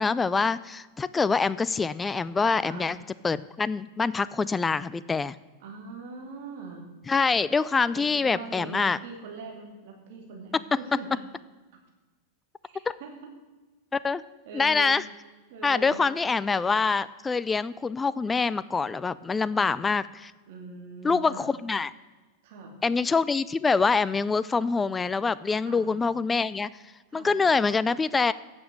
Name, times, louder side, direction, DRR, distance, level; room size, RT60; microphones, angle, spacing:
voice 1, 0.0-3.0 3.2-5.4 7.1-9.0 10.5-10.6 12.9-13.0 13.9-14.2 14.5-15.0 15.6-20.3 21.0-21.9 22.8-26.7 27.1-28.3, left 4 dB, 15° left, 17 dB, 0.4 m, -25 dB
voice 2, 5.6-6.9 7.9-11.2 12.6-13.3 14.4-14.9 15.5-16.0 19.5-19.8 20.5-21.5 22.4-22.8 25.6-25.9 27.1-27.4, right 4 dB, 65° right, 1 dB, 2.5 m, -42 dB
9.5 x 7.1 x 7.7 m, 1.2 s
hypercardioid pair, 105°, 0 cm